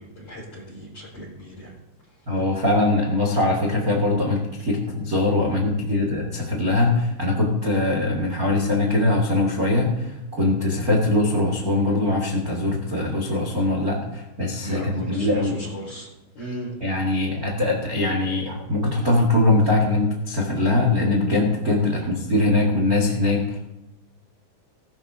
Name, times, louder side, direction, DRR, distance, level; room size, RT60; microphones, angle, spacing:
voice 1, 0.0-1.7 14.6-16.1 16.3-16.7, equal, 35° left, -8 dB, 5.5 m, -37 dB
voice 2, 2.3-15.6 16.8-23.6, left 2 dB, 70° right, 0 dB, 0.8 m, -22 dB
20.0 x 12.5 x 2.8 m, 0.92 s
omnidirectional pair, 5.3 m